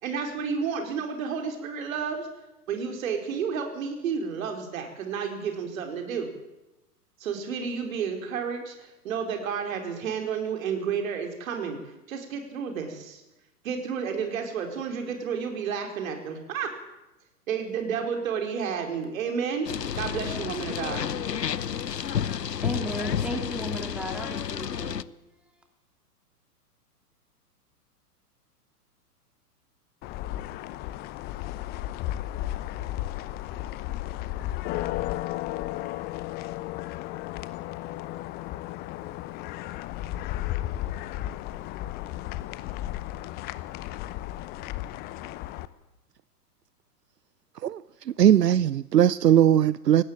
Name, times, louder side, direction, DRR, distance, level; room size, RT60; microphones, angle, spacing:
voice 1, 0.0-2.3 2.7-6.3 7.2-11.8 12.1-13.2 13.6-16.7 17.5-21.1, right 6 dB, 55° right, 4.8 m, -31 dB
sound 1, 19.6-25.0, left 8 dB, 85° left, 0.8 m, -31 dB
voice 2, 22.6-25.0, equal, ahead, 2.7 m, -35 dB
sound 2, 30.0-45.7, left 15 dB, 20° left, 0.7 m, -34 dB
voice 3, 48.2-50.0, right 10 dB, 80° right, 0.6 m, -19 dB
18.5 x 16.5 x 9.1 m
figure-of-eight pair, 110°, 48 cm